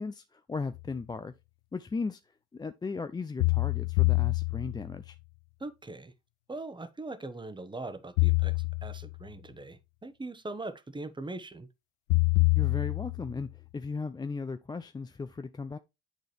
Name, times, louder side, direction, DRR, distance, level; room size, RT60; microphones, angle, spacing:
voice 1, 0.0-1.3 1.7-2.2 2.5-5.2 12.5-15.8, left 4 dB, 15° left, 0.4 m, -36 dB
sound 1, 0.7-0.8 3.4-5.0 8.2-9.2 12.1-13.4, left 34 dB, 75° left, 0.5 m, -26 dB
voice 2, 5.6-6.1 6.5-11.7, right 2 dB, 15° right, 1.0 m, -41 dB
9.3 x 3.9 x 3.3 m
hypercardioid pair, 60°, 31 cm